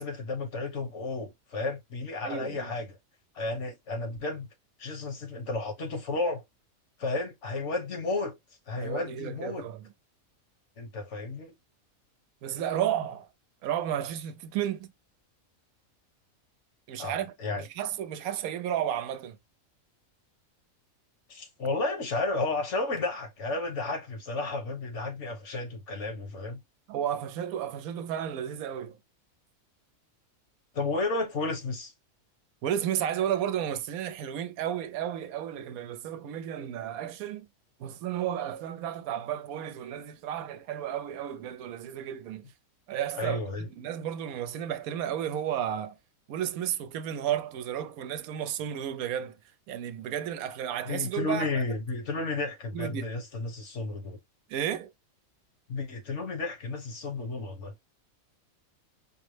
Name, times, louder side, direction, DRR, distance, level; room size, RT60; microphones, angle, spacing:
voice 1, 0.0-3.0 3.3-4.5 4.8-6.4 7.0-8.4 8.7-9.7 10.8-11.5 17.0-17.6 21.3-26.6 30.7-31.9 43.1-43.7 50.9-54.2 55.7-57.7, left 3 dB, 55° left, 1.4 m, -32 dB
voice 2, 2.2-2.7 8.8-9.8 12.4-13.3 13.6-14.9 16.9-17.3 17.6-19.4 26.9-29.0 32.6-37.4 37.8-42.5 42.9-43.4 43.8-46.0 46.3-49.4 49.7-51.6 52.7-53.0 54.5-54.9, right 10 dB, 85° right, 1.0 m, -32 dB
5.2 x 2.0 x 3.2 m
omnidirectional pair, 1.5 m